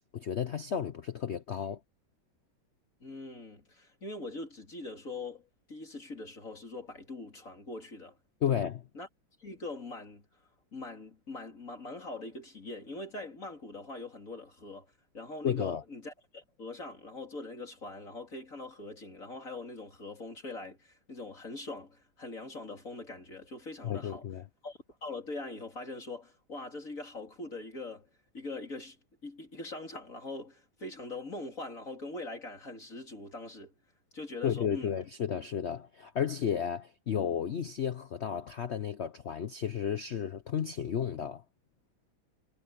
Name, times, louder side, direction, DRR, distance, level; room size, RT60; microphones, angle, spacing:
voice 1, 0.1-1.8 8.4-8.8 15.4-15.8 23.8-24.4 34.4-41.4, left 8 dB, 80° left, 0.6 m, -33 dB
voice 2, 3.0-8.2 8.5-8.6 8.9-9.1 9.4-10.2 10.7-14.9 15.1-24.2 24.6-28.1 28.3-29.0 29.2-33.7 34.1-35.0, left 2 dB, 40° left, 3.5 m, -42 dB
omnidirectional pair, 2.2 m